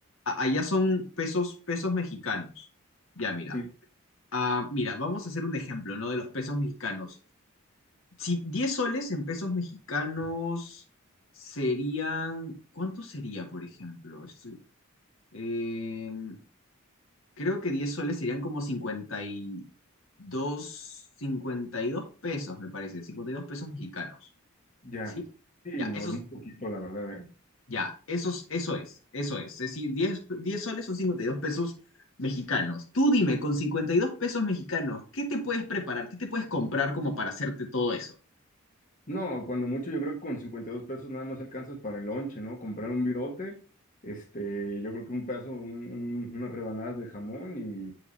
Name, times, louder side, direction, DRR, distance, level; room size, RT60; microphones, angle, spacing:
voice 1, 0.2-2.6 3.2-3.6 4.3-7.2 8.2-10.8 11.4-14.6 15.3-16.4 17.4-19.6 20.2-24.2 25.8-26.1 27.7-28.8 29.1-31.7 32.2-38.1, left 2 dB, 70° left, 1 dB, 1.6 m, -31 dB
voice 2, 24.8-25.2 25.6-27.3 39.1-43.6 44.0-47.9, equal, 40° left, 0 dB, 1.3 m, -34 dB
8.7 x 4.7 x 3.3 m, 0.35 s
head